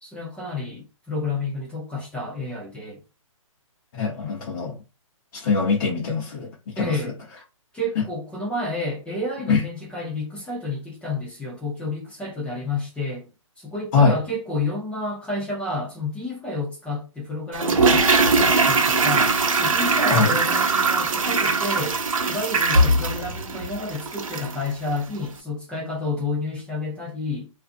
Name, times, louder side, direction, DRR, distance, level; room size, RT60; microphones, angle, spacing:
voice 1, 0.0-3.0 6.8-7.1 7.7-13.3 13.6-18.1 18.4-22.0 22.3-27.5, left 2 dB, 5° left, 0.7 m, -30 dB
voice 2, 3.9-4.8 5.3-6.5 6.8-7.1 8.0-8.1 9.5-9.6 13.9-14.2 20.1-20.3, left 4 dB, 40° left, 1.0 m, -22 dB
Toilet flush, 17.5-24.6 24.9-25.0, right 3 dB, 80° right, 0.7 m, -21 dB
2.6 x 2.4 x 2.5 m
hypercardioid pair, 145°, 17 cm